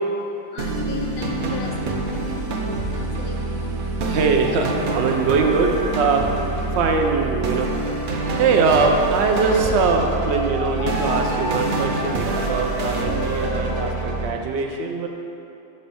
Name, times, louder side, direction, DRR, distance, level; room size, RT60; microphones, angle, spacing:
voice 1, 0.3-2.7 2.9-3.8, left 4 dB, 60° left, 2 dB, 0.7 m, -34 dB
sound 1, 0.6-14.3, right 2 dB, 55° right, 0.7 m, -26 dB
voice 2, 4.0-6.3 6.7-7.7 8.4-15.1, right 4 dB, 85° right, 3 dB, 0.9 m, -21 dB
Wind instrument woodwind instrument, 8.9-13.9, equal, 90° left, 1.5 m, -32 dB
4.3 x 4.2 x 5.4 m, 2.8 s
omnidirectional pair, 1.1 m